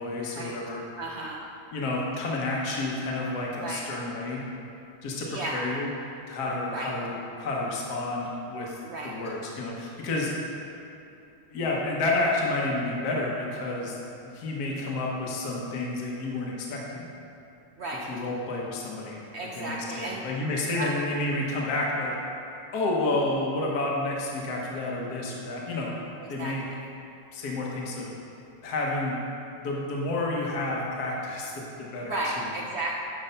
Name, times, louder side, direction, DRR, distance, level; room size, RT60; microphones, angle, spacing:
voice 1, 0.0-0.8 1.7-4.4 5.0-5.9 6.3-8.8 9.0-10.3 11.5-14.0 14.2-17.1 18.0-19.2 19.5-22.1 22.7-25.9 26.3-26.6 27.3-28.1 28.6-29.1 29.6-32.5, left 2 dB, 60° left, -3 dB, 1.5 m, -30 dB
voice 2, 1.0-1.4 3.6-3.9 5.3-5.6 6.7-6.9 8.8-9.1 17.8-18.1 19.3-20.2 20.8-20.9 26.2-26.5 32.1-32.9, right 2 dB, 85° right, -2 dB, 0.5 m, -33 dB
10.5 x 4.7 x 5.6 m, 2.8 s
omnidirectional pair, 2.1 m